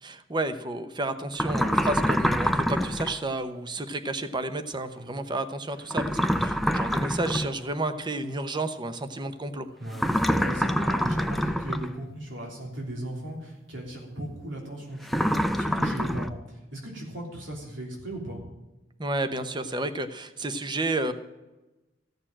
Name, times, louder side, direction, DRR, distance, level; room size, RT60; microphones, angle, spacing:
voice 1, 0.0-9.7 19.0-21.1, right 2 dB, 25° right, 10 dB, 0.8 m, -31 dB
sound 1, 1.3-3.2 5.9-7.6 9.9-11.9 15.1-16.3, equal, ahead, 0.4 m, -26 dB
voice 2, 9.8-18.4, right 1 dB, 85° right, -1 dB, 3.3 m, -38 dB
14.5 x 6.9 x 8.8 m, 1.0 s
head